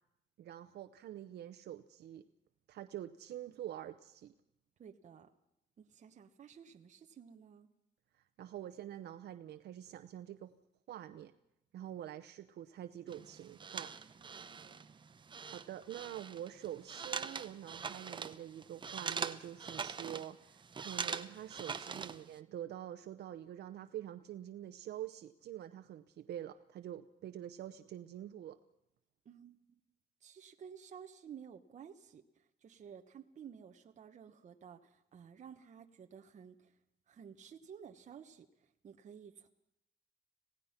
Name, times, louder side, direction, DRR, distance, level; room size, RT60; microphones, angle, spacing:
voice 1, 0.4-2.2 2.7-4.3 8.1-10.5 10.9-11.3 11.7-13.9 15.5-28.6, right 11 dB, 85° right, 9 dB, 0.8 m, -46 dB
voice 2, 4.8-5.3 5.8-7.7 14.3-14.7 29.2-29.6 30.2-32.2 32.6-36.7 37.1-38.5 38.8-39.5, right 7 dB, 45° right, 6 dB, 1.0 m, -53 dB
sound 1, 13.1-22.4, right 5 dB, 30° right, 0.8 m, -43 dB
26.5 x 17.0 x 5.8 m, 0.83 s
wide cardioid pair, 165°, 17 cm